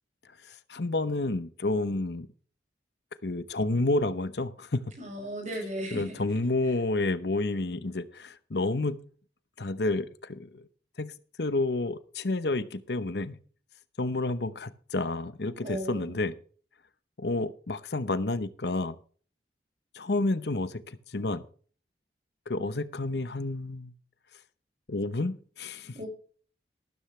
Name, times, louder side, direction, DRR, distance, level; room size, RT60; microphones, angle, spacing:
voice 1, 0.4-2.3 3.2-4.8 5.9-9.1 9.6-10.7 11.0-13.4 14.0-16.3 17.2-19.0 19.9-21.4 22.5-23.9 24.9-26.1, left 2 dB, 70° left, 14 dB, 0.9 m, -30 dB
voice 2, 5.0-6.2 15.6-16.2 25.9-26.1, equal, 40° right, 3 dB, 6.3 m, -36 dB
13.5 x 12.5 x 3.3 m, 0.43 s
head